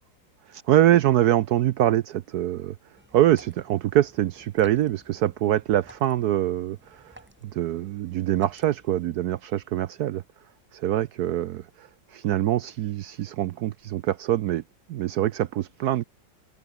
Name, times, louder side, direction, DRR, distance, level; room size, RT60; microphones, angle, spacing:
voice 1, 0.5-2.7 3.1-7.1 7.5-10.2 10.7-14.6 14.9-16.0, right 13 dB, 70° right, 1.0 m, -24 dB
sound 1, 2.9-9.1, equal, 5° right, 3.5 m, -54 dB
omnidirectional pair, 2.1 m